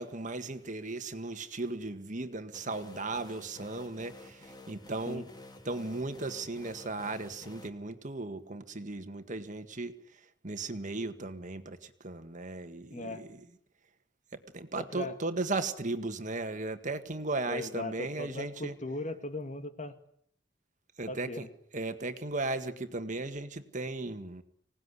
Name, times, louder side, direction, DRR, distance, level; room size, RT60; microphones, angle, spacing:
voice 1, 0.0-5.3 5.6-9.9 10.4-13.4 14.3-18.7 21.0-21.5 21.7-24.4, right 2 dB, 45° right, 8 dB, 1.8 m, -36 dB
sound 1, 2.5-7.7, left 2 dB, 25° left, 2.7 m, -51 dB
voice 2, 12.9-13.2 14.7-15.2 17.5-19.9 21.1-21.5, left 2 dB, 40° left, 9 dB, 2.2 m, -38 dB
25.5 x 18.5 x 9.8 m, 0.72 s
head